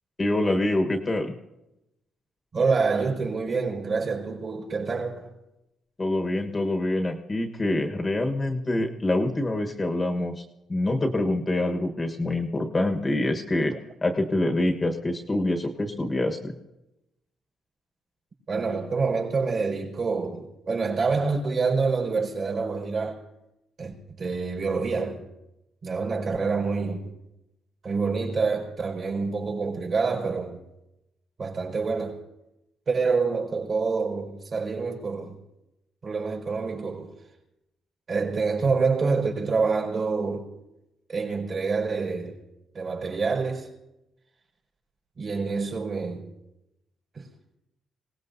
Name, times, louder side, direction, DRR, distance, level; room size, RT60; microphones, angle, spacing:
voice 1, 0.2-1.3 6.0-10.4 10.7-13.7 14.0-16.5, left 1 dB, 25° left, 1.3 m, -25 dB
voice 2, 2.5-5.3 18.5-23.2 23.8-25.3 25.8-27.1 27.8-30.6 31.4-32.2 32.9-35.4 36.0-37.1 38.1-40.5 41.1-42.4 42.7-43.7 45.2-46.3 47.1-47.3, right 4 dB, 50° right, 5.0 m, -27 dB
26.5 x 18.0 x 2.7 m
cardioid pair, 90°, 0 cm